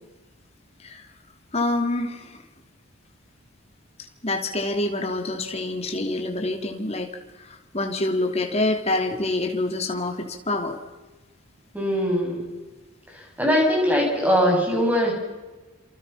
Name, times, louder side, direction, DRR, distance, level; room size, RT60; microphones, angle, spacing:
voice 1, 1.5-2.4 4.2-7.1 7.4-10.8, left 2 dB, 30° left, 4 dB, 2.9 m, -26 dB
voice 2, 11.7-12.5 13.4-15.1, equal, 5° right, -1 dB, 7.9 m, -21 dB
28.5 x 27.5 x 5.8 m, 1.2 s
head